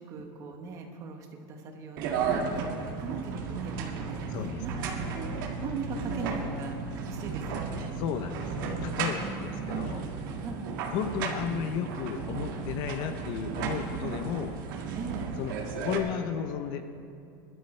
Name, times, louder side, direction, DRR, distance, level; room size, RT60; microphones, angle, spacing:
voice 1, 0.0-5.3 5.6-7.9 9.2-9.6 10.4-10.8 14.9-15.3, right 4 dB, 30° right, 3 dB, 1.2 m, -40 dB
sound 1, 2.0-16.0, right 5 dB, 65° right, 1.8 m, -34 dB
sound 2, 4.2-11.3, left 1 dB, 20° left, 3.4 m, -43 dB
voice 2, 4.3-4.6 8.0-10.0 10.9-14.6 15.4-15.5 15.8-16.8, left 8 dB, 40° left, 8 dB, 0.6 m, -33 dB
23.0 x 12.5 x 3.3 m, 2.6 s
supercardioid pair, 180°, 11 cm